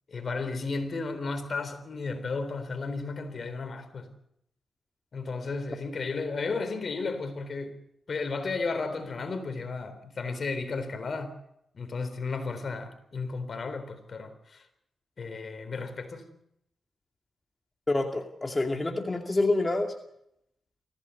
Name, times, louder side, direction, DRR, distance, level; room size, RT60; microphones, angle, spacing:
voice 1, 0.1-4.1 5.1-7.8 8.1-11.4 11.7-14.6 15.2-16.3, left 4 dB, 55° left, 3.8 m, -33 dB
voice 2, 17.9-19.9, left 2 dB, 30° left, 2.4 m, -27 dB
24.0 x 16.0 x 8.4 m
cardioid pair, 55°, 0 cm